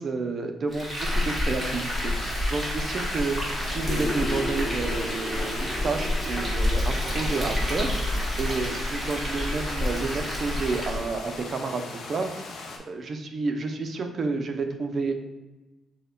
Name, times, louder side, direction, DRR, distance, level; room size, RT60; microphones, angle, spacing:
voice 1, 0.0-7.9 8.4-12.3 12.9-15.1, right 3 dB, 45° right, 5 dB, 0.5 m, -30 dB
Frying (food), 0.7-11.1, left 1 dB, 5° right, 1.2 m, -29 dB
sound 1, 1.6-12.8, left 3 dB, 65° left, 0.5 m, -40 dB
sound 2, 3.9-8.9, left 1 dB, 30° left, 0.9 m, -36 dB
6.2 x 2.1 x 2.2 m, 1.1 s
cardioid pair, 90°, 0 cm